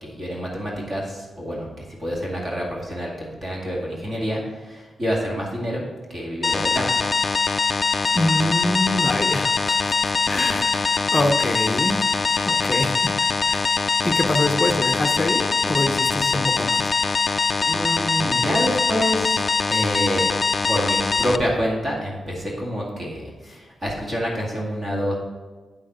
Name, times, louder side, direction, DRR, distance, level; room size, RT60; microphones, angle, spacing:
voice 1, 0.0-1.7 2.0-5.8 6.1-7.1 17.7-19.4 19.7-20.2 20.7-25.2, equal, 30° right, -4 dB, 2.0 m, -27 dB
sound 1, 6.4-21.4, left 4 dB, 30° left, 0.3 m, -22 dB
voice 2, 8.1-13.1 13.5-13.8 14.0-16.9, left 1 dB, 15° left, 4 dB, 0.8 m, -25 dB
8.8 x 7.4 x 4.2 m, 1.3 s
wide cardioid pair, 135°, 0 cm